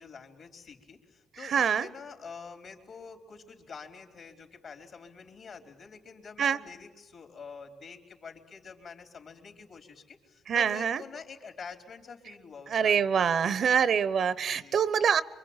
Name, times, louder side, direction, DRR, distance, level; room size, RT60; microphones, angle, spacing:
voice 1, 0.0-13.8 14.6-14.9, left 5 dB, 55° left, 6 dB, 4.1 m, -47 dB
voice 2, 1.4-1.9 6.4-6.6 10.5-11.0 12.7-15.2, right 7 dB, 55° right, 18 dB, 0.9 m, -25 dB
26.5 x 24.0 x 9.0 m, 1.2 s
cardioid pair, 90°, 0 cm